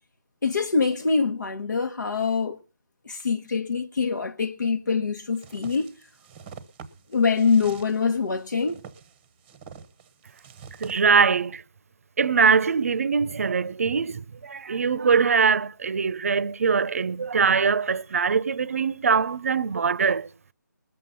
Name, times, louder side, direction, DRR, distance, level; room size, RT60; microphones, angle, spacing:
voice 1, 0.4-2.6 3.0-5.9 7.1-8.8, left 5 dB, 70° left, 1.3 m, -24 dB
sound 1, 5.3-11.0, right 6 dB, 15° right, 0.9 m, -46 dB
voice 2, 10.8-11.6 12.2-20.3, right 5 dB, 45° right, 0.7 m, -22 dB
20.5 x 7.6 x 5.7 m
figure-of-eight pair, 165°, 10 cm